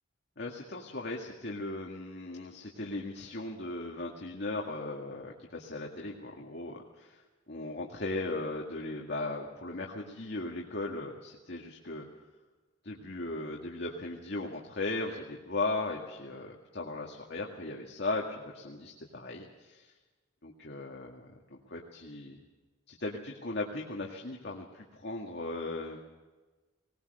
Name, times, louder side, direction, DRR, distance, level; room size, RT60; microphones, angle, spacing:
voice 1, 0.4-7.2 7.5-12.1 12.8-19.9 20.4-22.4 22.9-26.0, left 2 dB, 60° left, 0 dB, 1.9 m, -37 dB
20.0 x 19.5 x 6.7 m, 1.3 s
head